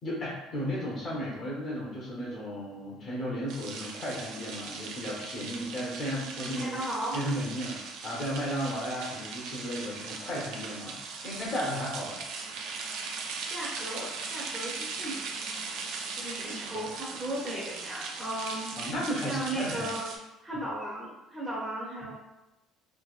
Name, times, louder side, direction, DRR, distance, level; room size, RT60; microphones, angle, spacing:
voice 1, 0.0-6.8 7.1-11.0 11.2-12.2 18.8-19.9, equal, 45° left, -5 dB, 1.1 m, -34 dB
sound 1, 3.5-20.2, right 4 dB, 80° right, 0.5 m, -39 dB
voice 2, 6.4-7.2 13.5-15.5 16.1-18.7 19.3-20.1 20.4-22.1, right 1 dB, 15° right, -7 dB, 0.9 m, -36 dB
3.4 x 2.9 x 2.5 m, 1.0 s
cardioid pair, 130°, 0 cm